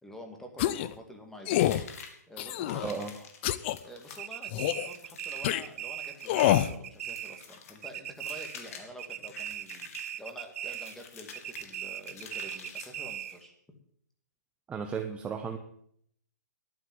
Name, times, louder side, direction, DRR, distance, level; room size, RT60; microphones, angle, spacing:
voice 1, 0.0-1.7 2.3-3.1 3.8-13.5, equal, 5° left, 2 dB, 2.1 m, -48 dB
sound 1, 0.6-0.9 1.5-1.8 2.4-2.9 3.4-3.8 4.5-4.9 5.4-5.6 6.3-6.7, left 13 dB, 40° left, 0.6 m, -26 dB
sound 2, 1.5-13.4, left 6 dB, 55° left, 2.5 m, -49 dB
voice 2, 2.8-3.2 14.7-15.6, right 6 dB, 10° right, 5 dB, 0.9 m, -34 dB
sound 3, 4.2-7.6 7.8-8.7 9.0-11.0 11.3-13.5, right 11 dB, 55° right, 0.6 m, -39 dB
11.5 x 9.2 x 7.7 m, 0.67 s
hypercardioid pair, 140°, 9 cm